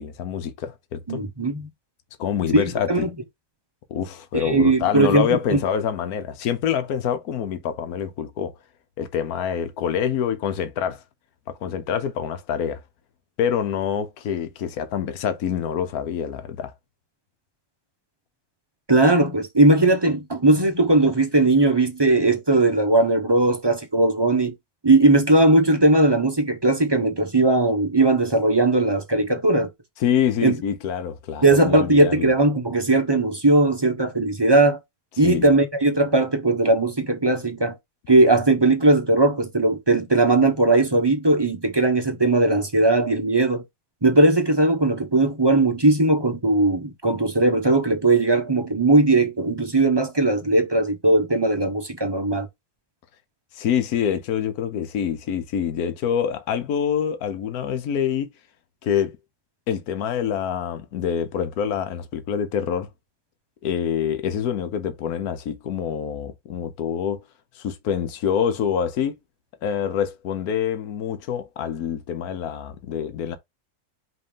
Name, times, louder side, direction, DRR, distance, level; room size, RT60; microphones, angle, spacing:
voice 1, 0.0-1.3 2.2-3.1 3.9-8.5 9.0-11.0 11.6-12.8 13.4-16.7 30.0-32.3 35.2-35.5 53.5-58.3 58.8-59.2 59.7-62.9 63.6-67.2 67.5-69.1 69.6-73.4, left 8 dB, 75° left, 1.4 m, -26 dB
voice 2, 1.1-1.7 2.5-3.1 4.3-5.6 18.9-24.5 24.8-29.7 30.4-30.6 31.4-34.8 35.2-37.7 38.1-43.6 44.0-52.5, right 2 dB, 20° right, 0.9 m, -19 dB
5.3 x 3.2 x 5.5 m
omnidirectional pair, 1.6 m